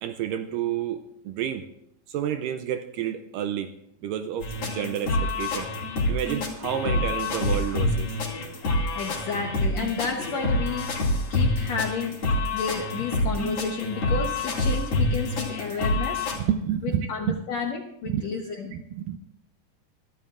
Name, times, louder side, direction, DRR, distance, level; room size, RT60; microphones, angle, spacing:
voice 1, 0.0-1.7 2.1-3.7 4.0-5.7 6.1-8.1 12.3-12.4 15.1-15.2 16.3-17.4 18.0-18.2 18.7-19.2, right 10 dB, 80° right, 8 dB, 2.0 m, -30 dB
sound 1, 4.4-16.4, left 2 dB, 45° left, 3.0 m, -27 dB
voice 2, 8.9-12.2 12.5-16.3 17.1-18.7, left 5 dB, 70° left, 2 dB, 1.6 m, -31 dB
23.0 x 13.0 x 2.5 m, 0.78 s
omnidirectional pair, 4.3 m